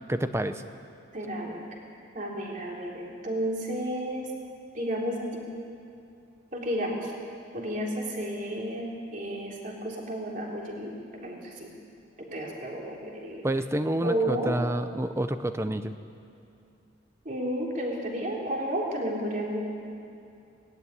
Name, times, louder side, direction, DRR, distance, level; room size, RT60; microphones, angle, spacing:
voice 1, 0.1-0.6 13.4-15.9, right 1 dB, 15° right, 10 dB, 0.6 m, -28 dB
voice 2, 1.1-1.6 2.1-4.3 4.7-5.5 6.5-7.1 7.5-11.7 12.2-13.4 14.0-14.6 17.3-19.6, right 1 dB, 40° right, -2 dB, 3.5 m, -32 dB
18.5 x 14.5 x 9.8 m, 2.6 s
head